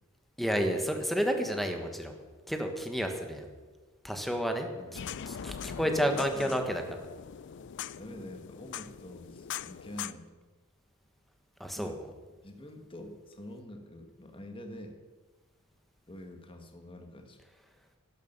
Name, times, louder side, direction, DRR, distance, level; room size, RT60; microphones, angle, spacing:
voice 1, 0.4-2.2 2.5-3.5 4.0-4.7 5.4-6.8 11.6-12.0, equal, ahead, 5 dB, 1.3 m, -30 dB
sound 1, 4.9-10.1, left 8 dB, 55° left, 0.4 m, -41 dB
voice 2, 6.1-6.6 8.0-10.3 11.7-12.0 12.4-15.0 16.1-17.4, left 1 dB, 25° left, 5 dB, 1.5 m, -46 dB
12.0 x 11.5 x 6.7 m, 1.4 s
head